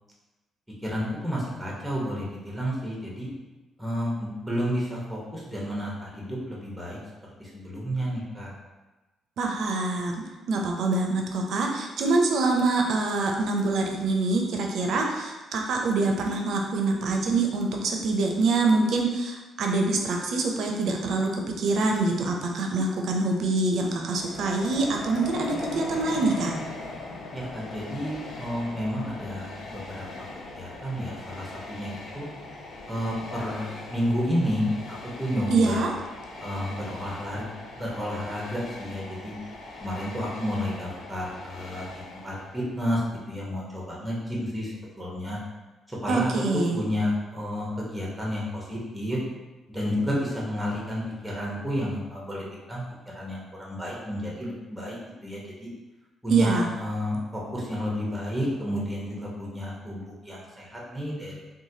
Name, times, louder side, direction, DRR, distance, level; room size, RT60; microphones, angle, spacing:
voice 1, 0.8-3.3 3.8-7.0 7.4-8.5 27.3-30.1 30.5-32.3 32.9-35.9 36.4-37.5 37.7-39.4 39.7-45.4 45.9-46.3 46.7-49.2 49.7-52.8 53.1-55.0 55.2-55.7 56.2-61.4, equal, 5° right, -5 dB, 0.9 m, -31 dB
voice 2, 9.4-10.1 10.5-21.3 21.6-26.6 35.5-35.9 46.1-46.8 56.3-56.7, right 3 dB, 70° right, 1 dB, 0.5 m, -25 dB
Train, 24.0-42.9, left 2 dB, 75° left, 0.4 m, -40 dB
3.0 x 2.2 x 2.7 m, 1.1 s
cardioid pair, 90°, 0 cm